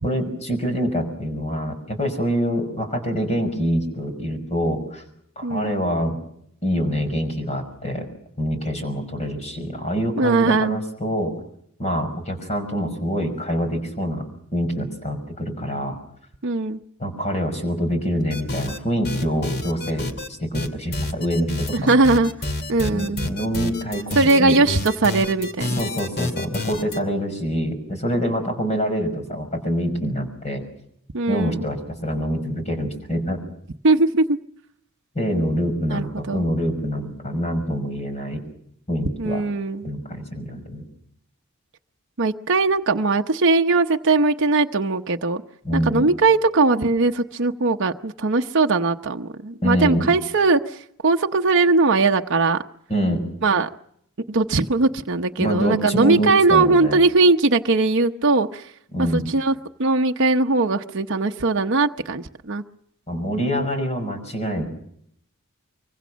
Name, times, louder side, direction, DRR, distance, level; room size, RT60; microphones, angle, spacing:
voice 1, 0.0-5.0 5.4-6.2 6.6-8.1 8.4-11.3 11.8-14.3 14.5-16.0 17.0-22.0 22.9-24.6 25.8-30.6 31.3-33.4 35.1-38.4 38.9-39.4 39.8-40.8 45.6-46.0 49.6-50.1 52.9-53.2 55.4-57.0 58.9-59.3 63.1-64.6, equal, 30° left, 6 dB, 5.6 m, -25 dB
voice 2, 5.4-5.7 10.2-10.8 16.4-16.8 21.7-22.3 22.7-23.3 24.2-25.9 31.1-31.7 33.8-34.4 35.9-36.4 39.2-39.8 42.2-45.4 45.7-50.8 51.0-52.6 53.4-53.7 54.3-58.7 59.0-59.5 59.8-62.6, right 3 dB, 60° right, 4 dB, 0.9 m, -20 dB
sound 1, 18.3-18.8 19.0-20.3 20.5-27.0, left 2 dB, 50° left, 2.5 m, -28 dB
25.0 x 24.5 x 6.3 m, 0.71 s
head